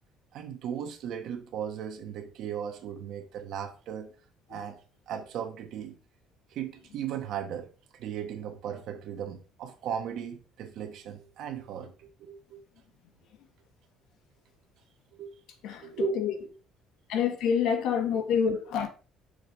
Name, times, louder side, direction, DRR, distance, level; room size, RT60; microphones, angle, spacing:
voice 1, 0.3-4.1 4.5-4.8 5.1-5.9 6.5-7.7 7.9-12.6 15.2-15.3 15.8-16.2, right 8 dB, 60° right, 1.3 m, -36 dB
voice 2, 15.6-16.4 17.1-18.9, left 7 dB, 65° left, 1.3 m, -27 dB
6.6 x 4.0 x 4.9 m
cardioid pair, 170°, 0 cm